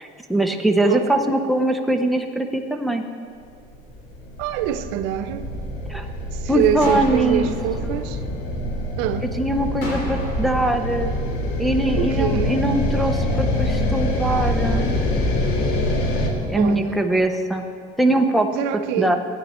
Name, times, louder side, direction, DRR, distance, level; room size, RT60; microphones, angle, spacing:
voice 1, 0.0-3.0 5.9-6.0 6.5-7.5 7.9-8.0 9.4-11.1 11.6-14.8 16.5-17.6 18.0-18.5 19.0-19.2, right 1 dB, ahead, 0.6 m, -22 dB
voice 2, 0.9-1.2 4.4-5.5 6.3-8.2 9.0-9.3 12.0-12.6 16.6-17.0 18.5-19.2, right 9 dB, 90° right, 0.7 m, -25 dB
sound 1, 3.7-16.3, left 1 dB, 65° left, 1.7 m, -25 dB
sound 2, 6.8-8.9 9.8-11.9, left 1 dB, 85° left, 3.5 m, -36 dB
16.0 x 10.0 x 4.3 m
cardioid pair, 155°, 17 cm